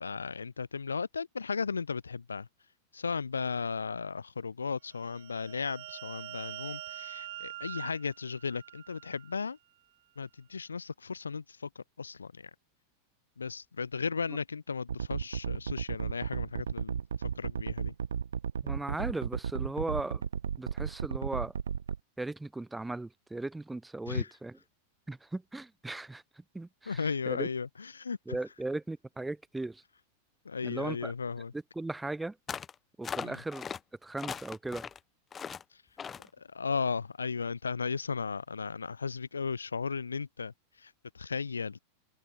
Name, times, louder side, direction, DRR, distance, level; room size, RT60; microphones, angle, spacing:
voice 1, 0.0-2.5 2.9-9.6 10.2-12.5 13.4-17.9 24.1-24.3 26.9-28.4 30.4-31.5 33.2-33.4 35.7-35.8 36.4-41.8, left 5 dB, 75° left, 1.0 m, -35 dB
sound 1, 4.9-9.4, right 17 dB, 55° right, 2.2 m, -45 dB
sound 2, 14.9-22.0, right 7 dB, 70° right, 0.7 m, -34 dB
voice 2, 18.6-20.2 20.6-21.5 22.2-24.6 25.1-27.5 28.3-29.8 30.6-31.1 31.5-32.4 33.0-33.7 34.0-34.9, right 2 dB, 5° right, 0.8 m, -37 dB
sound 3, 32.5-32.7 33.0-33.8 34.2-35.0 35.3-35.6 36.0-36.3, left 7 dB, 20° left, 1.8 m, -39 dB
open air
figure-of-eight pair, 90°, 0 cm